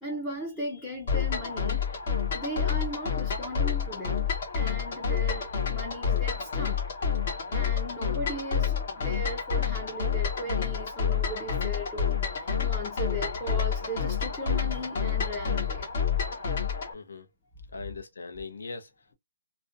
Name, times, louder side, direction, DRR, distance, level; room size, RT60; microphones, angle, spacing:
voice 1, 0.0-1.8 2.3-4.3 4.5-6.8 7.5-15.9, equal, 10° left, 0.4 m, -37 dB
sound 1, 1.1-16.9, left 7 dB, 40° left, 0.9 m, -29 dB
voice 2, 16.9-17.3 17.7-19.1, left 4 dB, 75° left, 0.7 m, -40 dB
2.4 x 2.1 x 2.5 m
hypercardioid pair, 175°, 0 cm